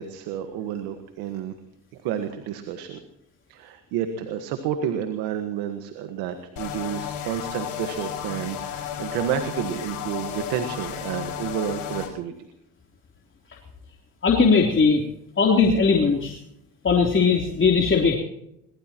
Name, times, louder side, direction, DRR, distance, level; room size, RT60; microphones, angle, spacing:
voice 1, 0.0-1.5 2.0-3.0 3.5-12.3, right 9 dB, 80° right, 8 dB, 1.6 m, -30 dB
sound 1, 6.6-12.1, left 10 dB, 75° left, 5.5 m, -33 dB
voice 2, 14.2-15.1 15.4-16.4 16.8-18.2, left 5 dB, 35° left, 0 dB, 3.4 m, -19 dB
22.0 x 20.0 x 3.0 m, 0.79 s
supercardioid pair, 70°, 36 cm